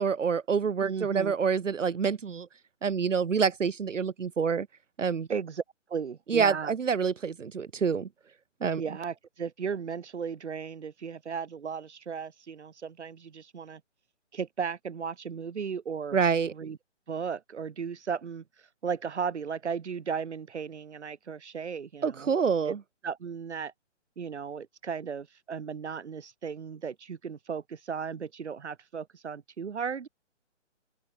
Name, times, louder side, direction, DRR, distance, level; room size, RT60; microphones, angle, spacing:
voice 1, 0.0-2.5 2.8-4.7 5.0-5.3 6.3-8.1 8.6-8.8 16.1-16.5 22.0-22.8, right 6 dB, 90° right, 1.6 m, -27 dB
voice 2, 0.8-1.3 5.3-5.6 5.9-6.7 8.8-13.8 14.3-16.2 16.5-16.8 17.1-18.4 18.8-22.3 22.7-22.8 23.0-23.7 24.2-30.1, right 6 dB, 65° right, 3.3 m, -35 dB
open air
hypercardioid pair, 160°, 37 cm